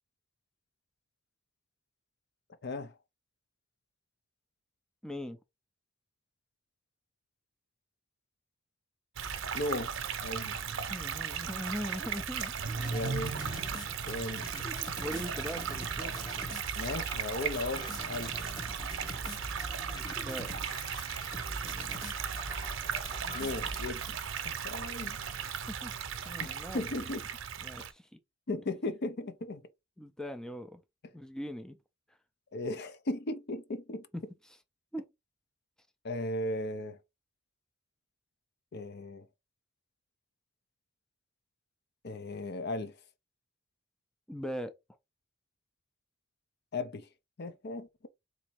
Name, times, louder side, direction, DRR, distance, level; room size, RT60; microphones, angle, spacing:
voice 1, 2.6-2.9 9.5-9.9 10.2-10.6 12.9-13.8 14.1-14.5 16.7-18.4 23.3-24.2 24.4-25.2 26.4-27.2 28.5-29.6 32.5-34.1 36.0-37.0 38.7-39.3 42.0-43.0 46.7-47.1 47.4-48.1, left 2 dB, 55° left, 0.6 m, -36 dB
voice 2, 5.0-5.4 10.9-13.0 15.0-16.1 20.2-20.5 25.7-25.9 26.2-27.1 27.6-28.1 30.0-30.8 31.1-31.8 34.1-34.2 34.9-35.1 44.3-44.8, equal, 5° left, 0.4 m, -40 dB
sound 1, 9.2-27.9, right 7 dB, 75° right, 0.7 m, -37 dB
sound 2, 12.8-23.9, equal, 20° left, 1.0 m, -43 dB
4.0 x 2.7 x 4.5 m
head